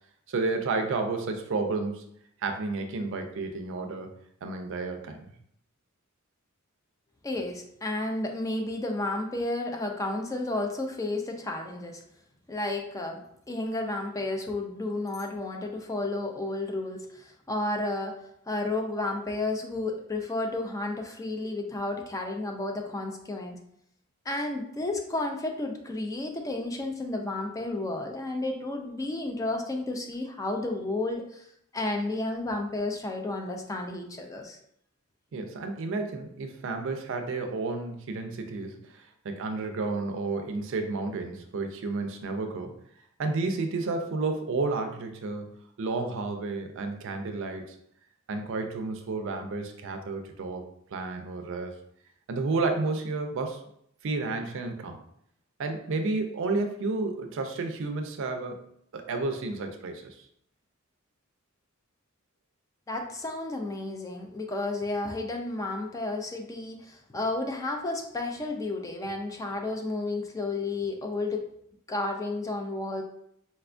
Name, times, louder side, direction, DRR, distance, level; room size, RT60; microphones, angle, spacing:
voice 1, 0.3-2.1 2.4-4.1 4.4-5.2 35.3-42.8 43.2-47.8 48.3-50.6 50.9-51.7 52.3-53.6 54.0-55.0 55.6-58.6 58.9-60.2, right 3 dB, 65° right, 5 dB, 0.4 m, -31 dB
voice 2, 7.2-12.0 12.5-13.2 13.5-18.2 18.5-23.6 24.3-31.5 31.7-34.6 62.9-71.5 71.9-73.0, left 2 dB, 15° left, 2 dB, 0.3 m, -32 dB
4.2 x 2.2 x 2.4 m, 0.71 s
head